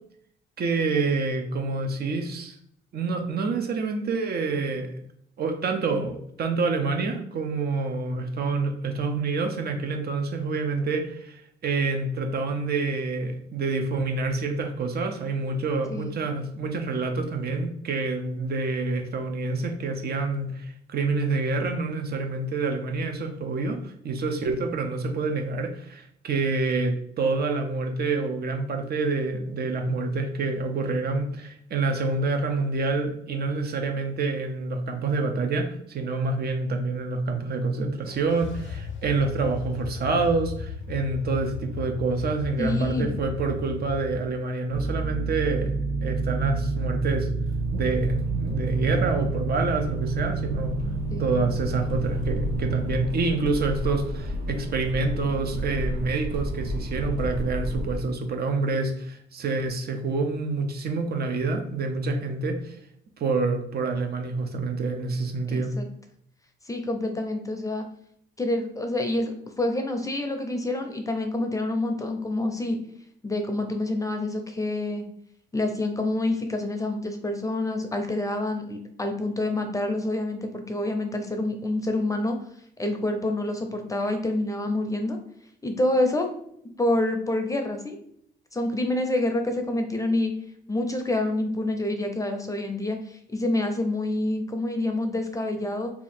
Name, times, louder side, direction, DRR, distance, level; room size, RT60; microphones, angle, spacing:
voice 1, 0.6-2.6 2.9-4.9 5.4-47.3 47.7-50.8 51.2-62.8 63.2-65.7, right 3 dB, 55° right, 4 dB, 0.6 m, -27 dB
sound 1, 38.1-44.2, left 6 dB, 75° left, 0.6 m, -36 dB
voice 2, 42.6-43.1 51.1-51.2 65.5-65.9 66.7-67.8 68.4-72.8 73.2-75.0 75.5-82.4 82.8-85.2 85.6-86.3 86.8-88.0 88.5-90.3 90.7-95.9, left 1 dB, 15° left, 5 dB, 0.6 m, -27 dB
sound 2, 44.7-53.1, right 3 dB, 25° right, 1.1 m, -29 dB
Accelerating revving vroom, 47.5-58.0, equal, 90° right, 0.8 m, -33 dB
2.8 x 2.4 x 4.2 m, 0.69 s
cardioid pair, 90°, 20 cm